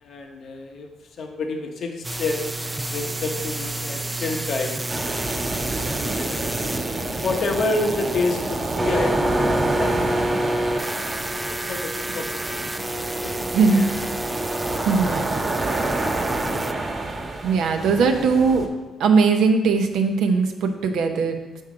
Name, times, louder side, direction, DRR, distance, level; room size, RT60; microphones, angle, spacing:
voice 1, 0.0-0.9 1.2-4.8 5.8-6.6 7.0-10.9 11.3-13.3 13.7-13.8, left 3 dB, 60° left, 3 dB, 0.8 m, -29 dB
sound 1, 2.0-16.7, right 1 dB, 15° right, 0.4 m, -29 dB
sound 2, 4.9-18.7, right 2 dB, 40° right, 1.2 m, -28 dB
voice 2, 14.9-15.4 17.4-18.6 19.0-21.4, right 5 dB, 80° right, 5 dB, 0.8 m, -19 dB
6.2 x 5.5 x 4.8 m, 1.2 s
cardioid pair, 90°, 0 cm